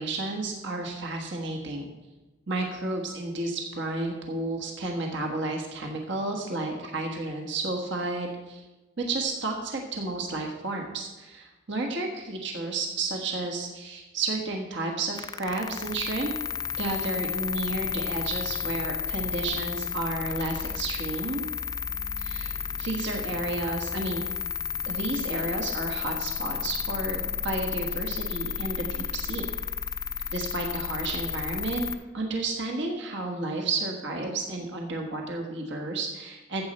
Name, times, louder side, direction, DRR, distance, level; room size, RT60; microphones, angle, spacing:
voice 1, 0.0-1.8 2.5-8.6 9.0-16.3 16.8-21.4 22.2-24.2 24.9-29.5 30.3-31.9 32.1-36.6, right 2 dB, 60° right, 1 dB, 1.5 m, -32 dB
sound 1, 15.2-32.0, left 7 dB, 20° left, 0.4 m, -32 dB
14.0 x 7.8 x 4.3 m, 1.1 s
head